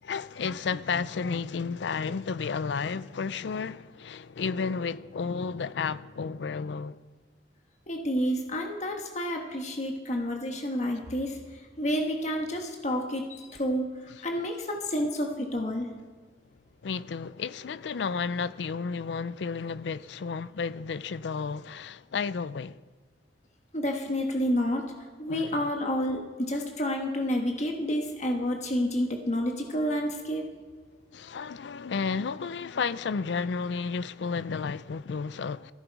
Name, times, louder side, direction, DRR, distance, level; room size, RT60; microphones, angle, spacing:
voice 1, 0.0-7.0 16.8-22.8 25.3-25.7 31.1-35.7, left 5 dB, 70° left, 0.4 m, -32 dB
voice 2, 7.9-15.9 23.7-24.8 25.2-30.4, equal, 40° left, 1.4 m, -29 dB
15.5 x 13.0 x 4.6 m
head